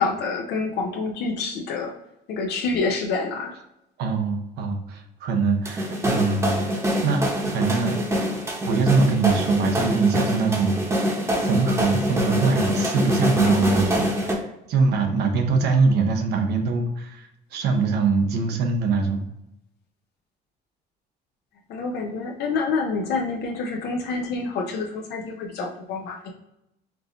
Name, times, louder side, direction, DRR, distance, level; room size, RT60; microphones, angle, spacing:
voice 1, 0.0-1.9 2.3-3.5 13.4-13.8 21.7-26.3, left 4 dB, 75° left, 1 dB, 0.6 m, -27 dB
voice 2, 4.0-6.6 7.0-8.0 8.7-10.9 11.4-19.3, right 4 dB, 75° right, 4 dB, 0.8 m, -23 dB
sound 1, 5.6-14.3, equal, 15° right, 0.9 m, -24 dB
4.6 x 2.6 x 2.9 m, 0.86 s
cardioid pair, 110°, 17 cm